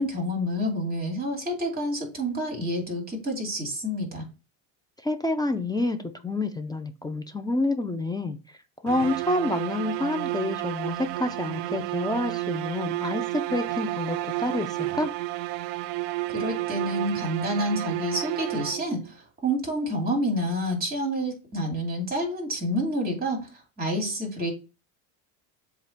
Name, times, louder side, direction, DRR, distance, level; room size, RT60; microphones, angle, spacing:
voice 1, 0.0-4.2 16.3-19.0 19.4-23.5 23.8-24.5, equal, 20° right, 2.7 m, -28 dB
voice 2, 5.0-8.6 8.8-15.1, left 2 dB, 10° left, 0.5 m, -28 dB
sound 1, 8.9-19.1, right 17 dB, 75° right, 0.6 m, -31 dB
7.5 x 2.5 x 5.7 m
cardioid pair, 120°, 43 cm